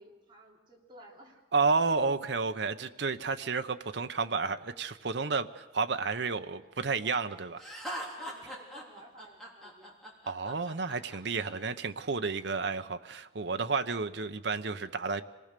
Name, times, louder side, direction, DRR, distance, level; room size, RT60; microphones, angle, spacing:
voice 1, 0.0-1.4 8.2-10.0, right 1 dB, 25° right, 3.8 m, -54 dB
voice 2, 1.5-7.6 10.3-15.2, right 4 dB, 65° right, 0.8 m, -31 dB
Laughter, 7.6-11.5, equal, ahead, 3.5 m, -41 dB
26.0 x 19.0 x 6.7 m
head